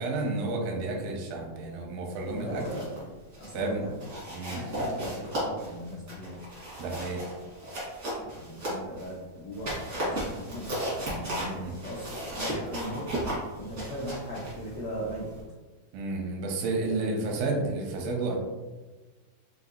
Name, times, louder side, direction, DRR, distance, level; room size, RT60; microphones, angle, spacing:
voice 1, 0.0-2.6 3.5-3.9 4.3-4.6 6.8-7.3 11.4-11.8 15.9-18.4, right 2 dB, 85° right, 1 dB, 2.4 m, -31 dB
voice 2, 2.3-2.9 3.4-4.0 4.4-6.5 8.2-13.1 13.5-15.4 16.9-17.3, equal, 80° left, -8 dB, 1.4 m, -39 dB
sound 1, 2.4-3.0 3.3-3.6 4.0-9.1 9.5-15.4, equal, 70° right, 0.8 m, -35 dB
5.7 x 2.7 x 2.6 m, 1.2 s
omnidirectional pair, 4.3 m